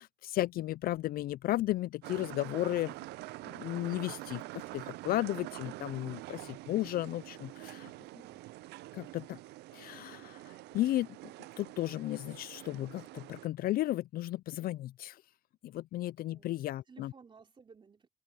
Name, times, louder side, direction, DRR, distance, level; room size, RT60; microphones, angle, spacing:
voice 1, 0.0-2.9 3.5-7.9 8.9-9.4 9.7-11.1 11.6-15.2 15.6-17.1, left 15 dB, 60° left, 0.4 m, -34 dB
sound 1, 2.0-13.5, right 18 dB, 80° right, 0.5 m, -46 dB
voice 2, 16.3-16.6 16.9-18.1, right 5 dB, 30° right, 3.8 m, -58 dB
cardioid pair, 110°, 17 cm